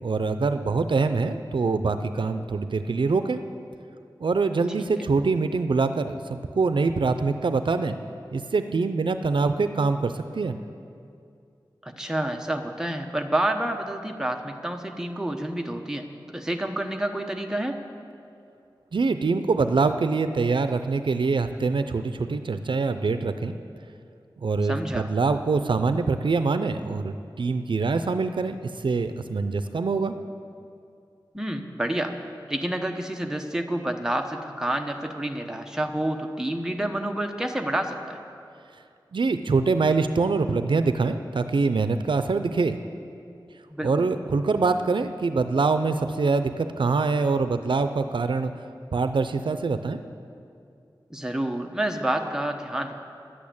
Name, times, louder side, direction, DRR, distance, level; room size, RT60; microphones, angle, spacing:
voice 1, 0.0-3.4 4.2-7.9 8.3-10.6 18.9-23.5 24.4-30.1 39.1-42.8 43.8-48.5 48.9-50.0, right 4 dB, 80° right, 10 dB, 0.5 m, -24 dB
voice 2, 11.8-17.8 24.6-25.1 31.3-32.2 32.5-38.2 43.7-44.1 51.1-53.0, right 1 dB, 5° right, 3 dB, 0.9 m, -29 dB
11.0 x 8.6 x 8.5 m, 2.5 s
wide cardioid pair, 75°, 8 cm